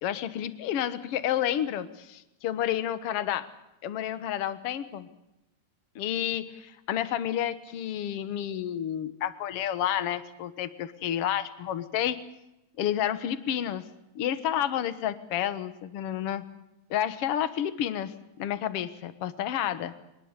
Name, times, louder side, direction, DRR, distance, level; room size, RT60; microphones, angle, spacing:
voice 1, 0.0-3.5 3.8-5.1 6.0-12.2 12.8-13.8 14.2-16.4 16.9-19.9, left 10 dB, 55° left, 13 dB, 1.9 m, -30 dB
23.0 x 20.5 x 8.2 m, 0.89 s
omnidirectional pair, 3.7 m